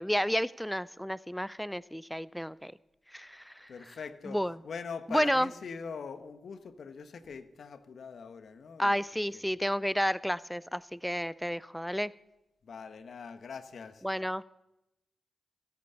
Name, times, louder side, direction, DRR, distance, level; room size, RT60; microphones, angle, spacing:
voice 1, 0.0-2.7 3.1-3.7 4.3-4.6 5.1-5.5 8.8-12.1 14.0-14.4, equal, 5° left, 20 dB, 0.4 m, -31 dB
voice 2, 3.7-9.0 9.3-9.4 12.6-14.0, left 5 dB, 70° left, 11 dB, 1.1 m, -42 dB
16.0 x 8.7 x 6.9 m, 0.92 s
supercardioid pair, 40°, 0 cm